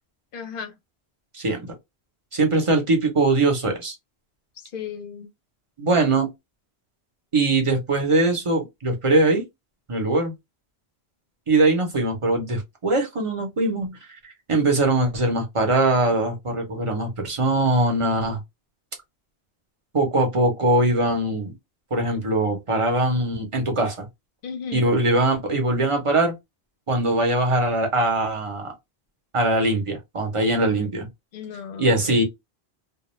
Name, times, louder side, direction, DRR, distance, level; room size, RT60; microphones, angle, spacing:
voice 1, 0.3-0.7 4.7-5.3 24.4-24.9 31.3-32.2, left 6 dB, 60° left, 0.7 m, -35 dB
voice 2, 1.3-1.7 2.3-3.9 5.8-6.3 7.3-9.4 9.9-10.3 11.5-14.0 14.2-18.4 19.9-21.5 21.9-24.1 24.7-26.3 26.9-28.7 29.3-31.1 31.8-32.2, right 2 dB, 35° right, 0.7 m, -21 dB
2.4 x 2.2 x 3.0 m
omnidirectional pair, 1.1 m